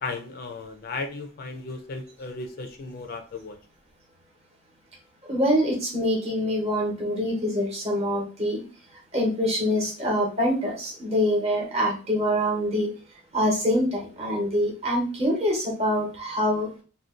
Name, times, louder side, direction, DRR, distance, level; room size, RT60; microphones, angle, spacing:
voice 1, 0.0-3.6, left 3 dB, 45° left, 6 dB, 0.3 m, -35 dB
voice 2, 5.2-8.6 9.1-12.9 13.3-16.7, equal, 30° right, -1 dB, 0.9 m, -25 dB
2.5 x 2.1 x 3.5 m, 0.36 s
head